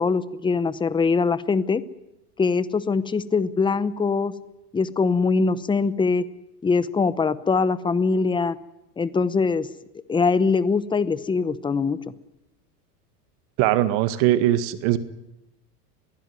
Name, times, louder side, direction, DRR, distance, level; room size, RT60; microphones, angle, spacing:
voice 1, 0.0-1.8 2.4-4.3 4.7-6.3 6.6-8.6 9.0-9.7 10.1-12.0, left 4 dB, 10° left, 15 dB, 0.8 m, -22 dB
voice 2, 13.6-15.0, right 13 dB, 55° right, 12 dB, 1.9 m, -20 dB
22.5 x 16.0 x 9.5 m, 0.91 s
supercardioid pair, 120°, 49 cm